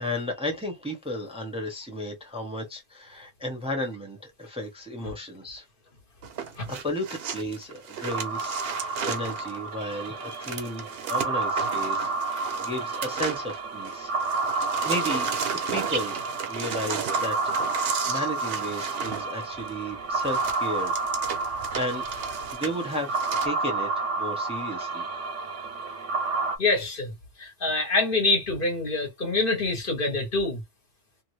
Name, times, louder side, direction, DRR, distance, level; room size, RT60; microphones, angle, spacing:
voice 1, 0.0-5.6 6.7-14.1 14.8-16.2 16.5-17.3 17.9-20.9 21.4-22.0 22.5-25.1, left 1 dB, 5° right, 0.9 m, -34 dB
sound 1, 6.2-13.9 14.2-23.5, right 7 dB, 60° right, 0.9 m, -35 dB
sound 2, 8.1-26.6, right 3 dB, 75° right, 1.1 m, -30 dB
voice 2, 26.6-30.6, left 3 dB, 50° left, 1.1 m, -26 dB
2.7 x 2.6 x 3.1 m
omnidirectional pair, 1.3 m